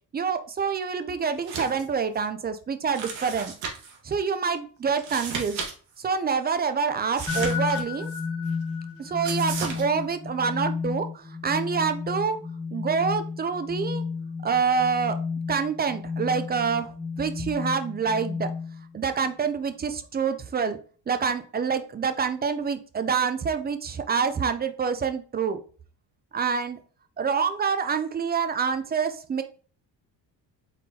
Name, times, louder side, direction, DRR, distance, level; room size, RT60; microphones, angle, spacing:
voice 1, 0.1-3.5 4.0-5.6 6.0-8.1 9.0-12.4 12.7-14.0 14.4-15.2 15.5-16.9 17.2-18.5 18.9-20.8 21.1-25.6 26.3-26.8 27.2-29.4, right 6 dB, 25° right, 9 dB, 0.3 m, -26 dB
sound 1, 1.4-1.8 2.2-2.3 2.9-4.0 4.9-5.7 6.0-6.1 7.1-8.2 9.2-9.8, right 5 dB, 80° right, 1.3 m, -34 dB
sound 2, 7.3-19.0, left 5 dB, 10° left, 1.3 m, -32 dB
4.1 x 3.7 x 2.7 m, 0.40 s
cardioid pair, 110°, 44 cm